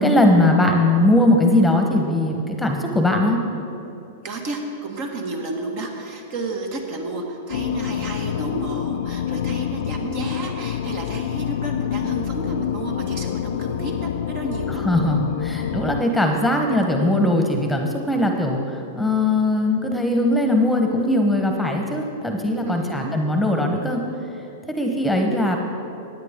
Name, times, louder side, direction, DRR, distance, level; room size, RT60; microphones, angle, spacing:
voice 1, 0.0-3.4 14.8-18.6 18.9-24.0 24.7-25.6, left 1 dB, 5° left, 3 dB, 1.2 m, -20 dB
voice 2, 4.2-14.9 22.7-23.2, right 2 dB, 55° right, 2 dB, 1.8 m, -31 dB
sound 1, 7.5-16.0, left 10 dB, 65° left, 0.3 m, -27 dB
15.5 x 9.6 x 3.7 m, 2.8 s
hypercardioid pair, 110°, 0 cm